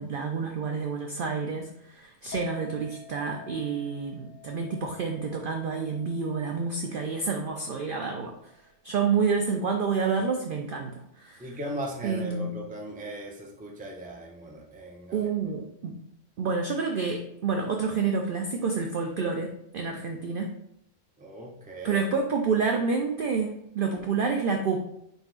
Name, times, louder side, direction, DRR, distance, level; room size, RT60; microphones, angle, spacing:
voice 1, 0.0-8.3 8.8-11.6 12.0-12.5 15.1-16.0 16.4-20.5 21.8-23.5 23.7-24.8, right 5 dB, 70° right, 2 dB, 0.5 m, -28 dB
Chink clink, 2.3-8.6, left 4 dB, 80° left, 1.5 m, -48 dB
voice 2, 11.4-15.3 21.2-22.0, right 1 dB, 10° right, -1 dB, 0.4 m, -38 dB
4.5 x 4.0 x 2.4 m, 0.78 s
omnidirectional pair, 1.4 m